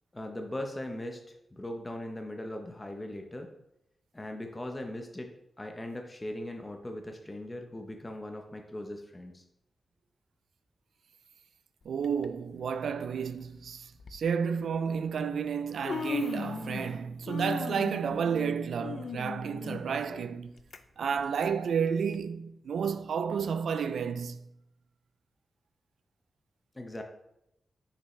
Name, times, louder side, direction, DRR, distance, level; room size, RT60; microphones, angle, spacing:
voice 1, 0.1-3.5 4.1-5.3 5.6-9.4 26.7-27.0, left 1 dB, 20° left, 0.7 m, -39 dB
voice 2, 11.9-20.5 21.0-24.4, right 6 dB, 90° right, 0.3 m, -31 dB
Human voice, 12.0-12.3 13.3-13.4 14.0-14.2 15.2-15.3 15.6-17.0 17.3-20.8 21.2-21.3 22.1-22.2, left 5 dB, 65° left, 0.4 m, -37 dB
5.8 x 5.6 x 3.1 m
wide cardioid pair, 95°, 0 cm